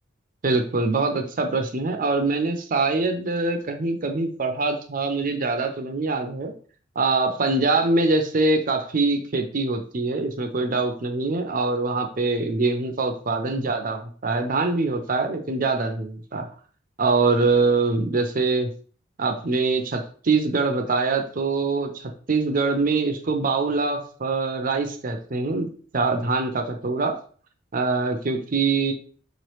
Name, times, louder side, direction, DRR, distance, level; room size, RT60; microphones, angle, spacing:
voice 1, 0.4-6.5 7.0-16.5 17.0-18.7 19.2-25.7 25.9-27.1 27.7-28.9, right 3 dB, 45° right, 5 dB, 0.6 m, -24 dB
4.6 x 3.0 x 3.2 m, 0.44 s
head